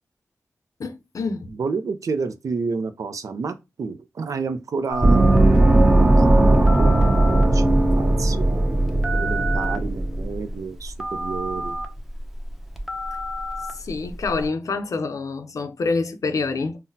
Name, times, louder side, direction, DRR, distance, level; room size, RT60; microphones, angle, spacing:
voice 1, 0.8-1.5 13.7-16.8, left 4 dB, 75° left, 0.5 m, -27 dB
voice 2, 1.6-5.4 6.0-8.8 9.1-11.8, right 4 dB, 75° right, 0.4 m, -30 dB
Telephone, 4.9-14.5, right 1 dB, 5° right, 0.7 m, -32 dB
Gong, 5.0-10.3, right 2 dB, 25° right, 0.9 m, -17 dB
3.8 x 2.0 x 2.6 m
cardioid pair, 45°, 6 cm